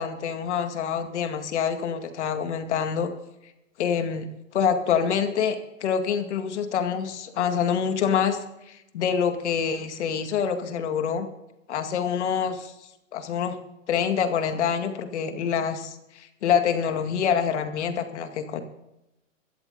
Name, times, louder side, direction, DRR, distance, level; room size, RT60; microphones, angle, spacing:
voice 1, 0.0-3.1 3.8-4.3 4.5-8.4 8.7-11.3 11.7-12.7 13.1-13.6 13.9-18.6, left 7 dB, 60° left, 7 dB, 2.2 m, -26 dB
16.5 x 13.5 x 3.9 m, 0.89 s
hypercardioid pair, 130°, 39 cm